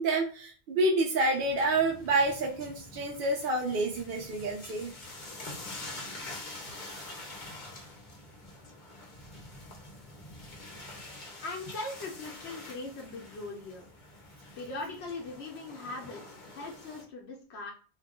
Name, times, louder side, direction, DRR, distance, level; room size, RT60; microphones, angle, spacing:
voice 1, 0.0-4.9, right 2 dB, 65° right, -1 dB, 0.7 m, -28 dB
sound 1, 1.1-17.0, left 2 dB, 50° left, 0.9 m, -46 dB
voice 2, 11.4-13.9 14.6-17.7, left 2 dB, 80° left, 0 dB, 1.0 m, -40 dB
2.7 x 2.3 x 3.5 m, 0.36 s
omnidirectional pair, 1.1 m